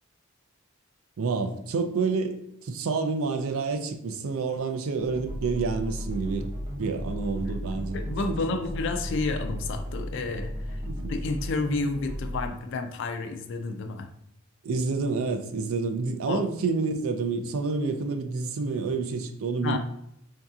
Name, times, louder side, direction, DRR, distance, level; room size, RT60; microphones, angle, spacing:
voice 1, 1.2-6.5 6.8-8.0 8.3-8.6 10.9-11.1 14.6-19.8, right 4 dB, 70° right, 7 dB, 0.4 m, -28 dB
sound 1, 5.0-12.5, equal, 20° right, 0.6 m, -35 dB
voice 2, 7.7-10.8 11.1-14.1 16.3-16.4 19.6-19.8, left 3 dB, 55° left, 6 dB, 0.3 m, -30 dB
4.5 x 2.7 x 2.3 m, 0.77 s
head